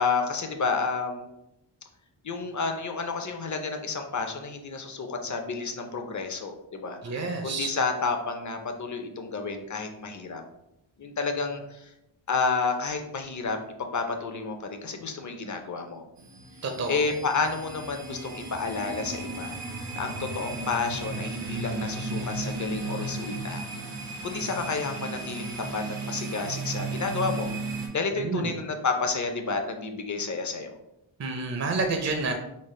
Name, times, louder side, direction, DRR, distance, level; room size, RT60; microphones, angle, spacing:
voice 1, 0.0-1.3 2.2-7.0 7.4-10.4 11.0-11.9 12.3-16.0 16.9-19.6 20.0-23.6 24.2-27.5 27.9-30.7, left 4 dB, 40° left, 5 dB, 0.6 m, -30 dB
voice 2, 7.0-7.7 16.6-17.0 28.1-28.5 31.2-32.3, right 3 dB, 35° right, 4 dB, 0.5 m, -29 dB
sound 1, 16.2-27.9, right 3 dB, 80° right, 1.2 m, -35 dB
5.3 x 2.1 x 3.1 m, 0.87 s
wide cardioid pair, 85°, 49 cm